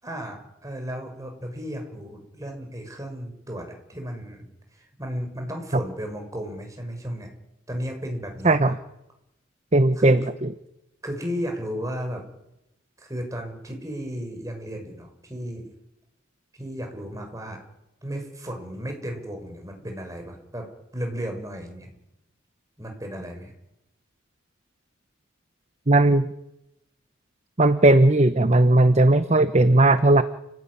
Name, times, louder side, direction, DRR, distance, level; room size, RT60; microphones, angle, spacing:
voice 1, 0.0-7.3 7.7-8.6 10.0-10.2 11.0-12.2 13.0-15.7 16.5-17.6 18.0-20.7 20.9-21.9 22.8-23.5, equal, 15° right, 3 dB, 6.3 m, -34 dB
voice 2, 8.4-8.8 9.7-10.2 25.9-26.3 27.6-30.2, right 2 dB, 35° right, 11 dB, 0.9 m, -17 dB
29.0 x 16.0 x 10.0 m, 0.87 s
head